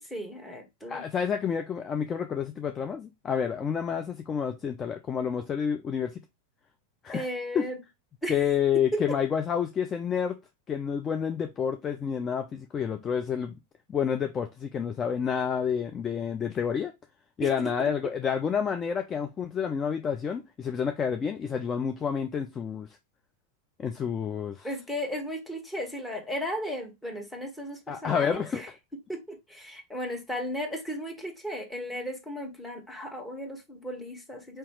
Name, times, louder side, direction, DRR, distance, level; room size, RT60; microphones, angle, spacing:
voice 1, 0.1-1.0 7.1-7.8 8.2-8.3 8.9-9.2 17.4-17.7 24.6-28.7 29.1-34.6, equal, 5° left, 1.4 m, -35 dB
voice 2, 0.9-6.2 7.0-7.3 7.5-7.7 8.3-10.4 10.7-13.6 13.9-16.9 17.4-22.9 23.8-24.7 27.9-28.6, left 7 dB, 25° left, 0.5 m, -29 dB
4.5 x 2.9 x 3.1 m
figure-of-eight pair, 90°, 0 cm